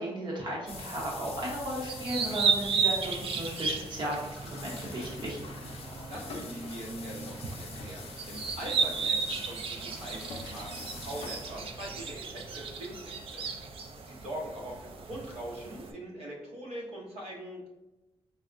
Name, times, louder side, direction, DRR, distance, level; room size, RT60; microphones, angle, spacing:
voice 1, 0.0-5.4, right 1 dB, 45° right, -4 dB, 0.8 m, -35 dB
sound 1, 0.7-13.3, left 5 dB, 70° left, 0.4 m, -46 dB
sound 2, 0.7-15.9, right 5 dB, 65° right, 0.3 m, -35 dB
sound 3, 3.9-13.4, right 1 dB, 5° right, 0.7 m, -49 dB
voice 2, 6.1-13.5 14.0-17.7, right 1 dB, 85° right, -3 dB, 0.7 m, -42 dB
4.2 x 2.0 x 2.4 m, 1.0 s
wide cardioid pair, 170°, 10 cm